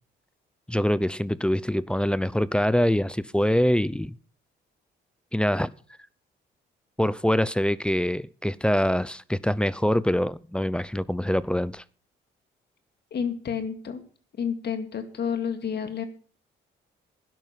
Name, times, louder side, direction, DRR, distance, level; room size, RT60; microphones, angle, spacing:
voice 1, 0.7-4.2 5.3-5.7 7.0-11.8, equal, 5° left, 0.6 m, -24 dB
voice 2, 13.1-14.0 14.4-16.0, left 7 dB, 55° left, 2.3 m, -30 dB
12.5 x 10.5 x 5.7 m
cardioid pair, 90°, 20 cm